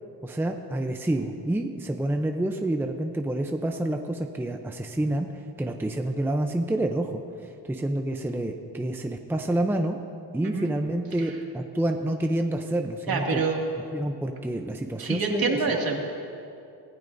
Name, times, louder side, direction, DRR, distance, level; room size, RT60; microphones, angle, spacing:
voice 1, 0.2-5.3 5.6-10.0 10.3-13.4 13.9-15.6, right 1 dB, 5° right, 4 dB, 0.6 m, -28 dB
voice 2, 13.1-13.6 15.0-16.0, right 4 dB, 60° right, 0 dB, 2.3 m, -26 dB
25.5 x 16.0 x 2.7 m, 2.6 s
wide cardioid pair, 140°, 40 cm